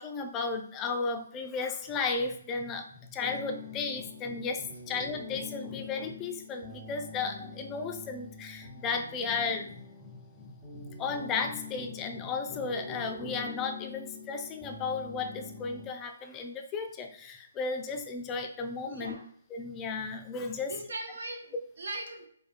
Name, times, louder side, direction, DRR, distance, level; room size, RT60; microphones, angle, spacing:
voice 1, 0.0-19.2 19.5-20.7, left 4 dB, 20° left, 4 dB, 0.4 m, -34 dB
sound 1, 3.2-15.9, left 4 dB, 15° right, 1.1 m, -45 dB
voice 2, 18.8-19.3 20.6-22.3, right 2 dB, 60° right, 4 dB, 0.8 m, -40 dB
4.7 x 2.3 x 2.5 m, 0.65 s
figure-of-eight pair, 135°, 0 cm